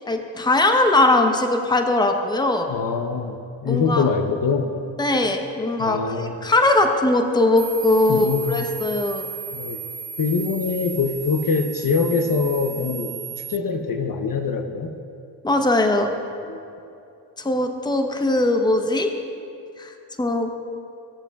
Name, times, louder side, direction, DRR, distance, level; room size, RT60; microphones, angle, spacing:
voice 1, 0.1-2.7 3.7-4.0 5.0-9.3 15.4-16.1 17.4-19.1 19.8-20.7, left 2 dB, 10° left, 5 dB, 0.8 m, -20 dB
voice 2, 2.7-4.8 5.8-6.4 8.1-8.7 9.5-9.8 10.2-15.0 16.5-16.6, left 5 dB, 45° left, 6 dB, 0.8 m, -24 dB
sound 1, 7.6-13.6, right 8 dB, 25° right, 0.4 m, -35 dB
16.0 x 6.9 x 2.4 m, 2.7 s
supercardioid pair, 45°, 44 cm